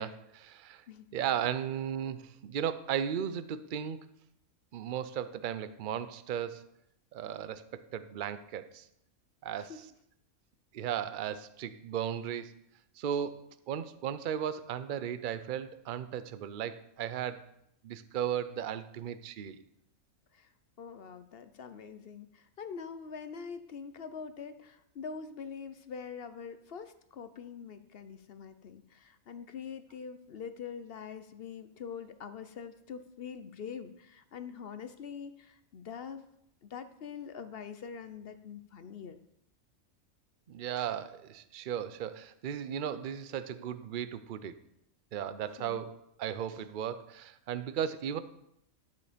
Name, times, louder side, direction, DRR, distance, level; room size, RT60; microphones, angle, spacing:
voice 1, 0.0-0.8 1.1-4.1 4.7-6.6 7.1-8.9 9.4-9.7 10.7-12.5 13.0-17.4 17.8-19.6 40.5-44.6 45.1-48.2, right 9 dB, 50° right, 12 dB, 0.6 m, -36 dB
voice 2, 20.8-36.2 36.6-39.2 45.6-45.8, left 6 dB, 55° left, 10 dB, 0.7 m, -44 dB
11.5 x 6.9 x 5.1 m, 0.77 s
omnidirectional pair, 1.5 m